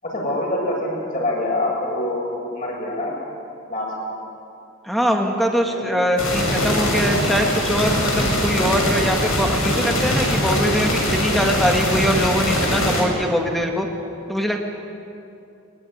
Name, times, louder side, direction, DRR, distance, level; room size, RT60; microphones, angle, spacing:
voice 1, 0.0-3.2 3.7-4.2 5.5-6.1, left 1 dB, 40° left, -3 dB, 7.7 m, -26 dB
voice 2, 4.8-13.9 14.3-14.6, equal, ahead, 2 dB, 2.1 m, -22 dB
sound 1, 6.2-13.0, equal, 90° left, 6.9 m, -21 dB
22.5 x 22.0 x 9.7 m, 2.6 s
head